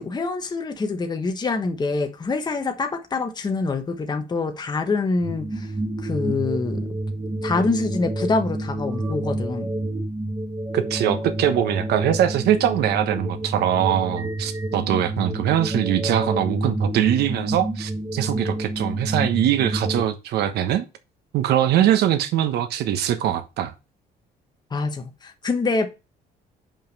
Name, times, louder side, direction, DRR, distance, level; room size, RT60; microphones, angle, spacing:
voice 1, 0.0-5.7 6.0-6.9 7.4-9.7 24.7-25.9, left 3 dB, 25° left, 1.1 m, -25 dB
sound 1, 5.2-20.0, right 1 dB, 25° right, 1.9 m, -28 dB
voice 2, 10.7-20.8 21.3-23.7, right 11 dB, 75° right, 1.2 m, -22 dB
5.6 x 5.2 x 5.3 m
cardioid pair, 110°, 17 cm